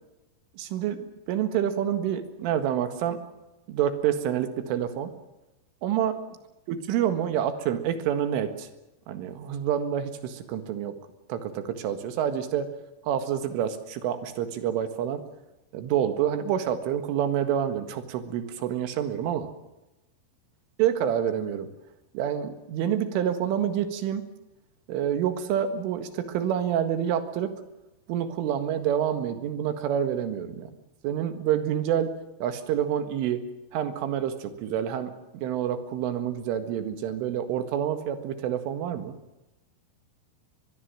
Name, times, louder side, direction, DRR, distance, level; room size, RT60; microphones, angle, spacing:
voice 1, 0.6-1.0 1.3-3.2 3.7-5.1 5.8-6.2 6.9-8.7 9.1-11.0 11.3-12.7 13.0-15.2 15.7-19.5 20.8-21.7 22.1-24.2 24.9-27.5 28.1-30.7 31.0-32.1 32.4-33.4 33.7-39.2, right 9 dB, 80° right, 9 dB, 4.2 m, -27 dB
23.5 x 21.5 x 7.6 m, 0.99 s
omnidirectional pair, 5.7 m